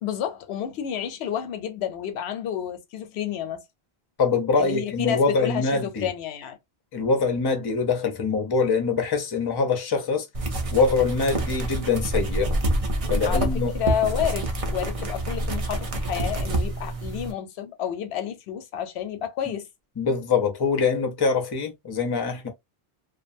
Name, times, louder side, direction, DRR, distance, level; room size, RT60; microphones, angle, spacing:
voice 1, 0.0-3.6 4.6-6.6 13.2-19.7, left 9 dB, 85° left, 0.9 m, -30 dB
voice 2, 4.2-6.1 6.9-10.3 10.7-12.5 13.1-13.7 19.5-19.6 20.0-22.5, left 4 dB, 30° left, 0.5 m, -24 dB
sound 1, 10.3-17.3, right 1 dB, 45° right, 0.5 m, -27 dB
2.4 x 2.2 x 2.5 m
omnidirectional pair, 1.1 m